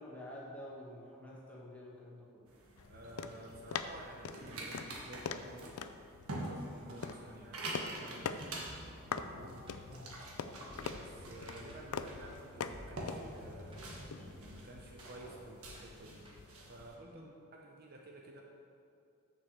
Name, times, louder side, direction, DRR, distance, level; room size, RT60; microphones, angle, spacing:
voice 1, 0.0-2.4 9.8-10.0 17.1-17.2, left 1 dB, 5° left, -6 dB, 1.6 m, -49 dB
sound 1, 2.5-16.9, right 1 dB, 80° right, 1.4 m, -47 dB
sound 2, 2.8-17.0, left 6 dB, 80° left, 0.4 m, -45 dB
voice 2, 2.9-5.7 6.4-8.5 9.1-9.6 10.9-13.8 14.4-16.3 16.6-18.4, right 1 dB, 45° right, 0 dB, 0.8 m, -52 dB
sound 3, 8.7-16.8, equal, 25° right, 1.2 m, -56 dB
6.8 x 5.5 x 6.7 m, 2.5 s
head